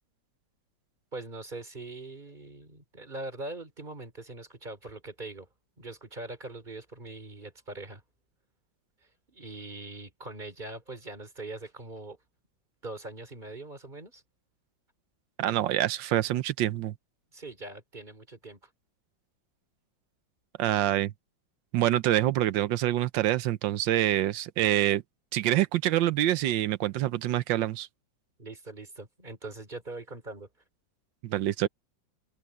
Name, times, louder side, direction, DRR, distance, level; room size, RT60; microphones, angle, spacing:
voice 1, 1.1-5.5 5.8-8.0 9.3-12.2 12.8-14.2 17.3-18.6 28.4-30.5, right 2 dB, 25° right, 3.7 m, -42 dB
voice 2, 15.4-16.9 20.6-21.1 21.7-25.0 25.3-27.9 31.2-31.7, right 13 dB, 75° right, 1.4 m, -26 dB
open air
omnidirectional pair, 2.1 m